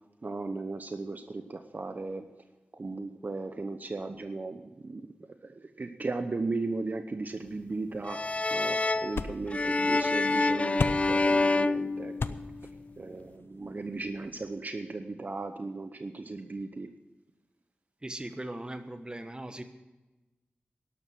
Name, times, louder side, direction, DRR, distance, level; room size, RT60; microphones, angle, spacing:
voice 1, 0.2-2.2 2.7-5.1 5.4-8.2 8.5-12.1 13.0-16.9, right 3 dB, 50° right, 7 dB, 0.9 m, -36 dB
sound 1, 7.5-14.5, left 4 dB, 80° left, 0.7 m, -39 dB
sound 2, 8.1-12.7, left 3 dB, 35° left, 0.4 m, -27 dB
voice 2, 18.0-19.6, right 1 dB, 20° right, 8 dB, 1.2 m, -39 dB
12.5 x 12.0 x 6.2 m, 1.1 s
wide cardioid pair, 90°, 4 cm